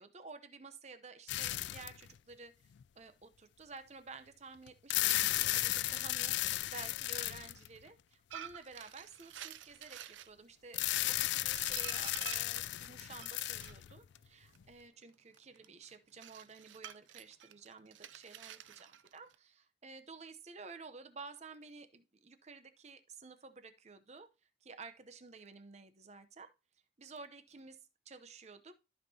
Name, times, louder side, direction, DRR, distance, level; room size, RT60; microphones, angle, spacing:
voice 1, 0.0-2.5 3.0-5.2 5.5-24.3 24.6-26.5 27.0-28.7, right 4 dB, 35° right, 0.7 m, -52 dB
sound 1, 1.3-2.1 2.8-2.9 4.7-7.9 10.7-14.2, left 16 dB, 70° left, 0.3 m, -34 dB
sound 2, 8.3-10.3 10.9-13.7 14.5-19.3, right 10 dB, 90° right, 0.5 m, -49 dB
13.5 x 5.5 x 2.8 m
head